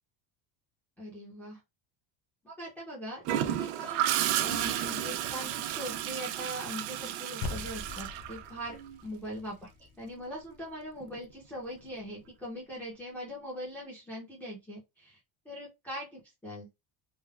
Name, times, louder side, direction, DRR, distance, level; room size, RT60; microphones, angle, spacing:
voice 1, 1.0-1.6 2.4-8.8 9.0-9.7 10.0-15.2 15.5-16.7, equal, 5° left, 0.6 m, -41 dB
Gurgling / Toilet flush, 3.3-9.0 11.0-11.2, right 12 dB, 75° right, 0.6 m, -32 dB
sound 1, 7.4-11.9, left 4 dB, 65° left, 0.6 m, -43 dB
3.4 x 2.1 x 2.3 m
cardioid pair, 180°, 45 cm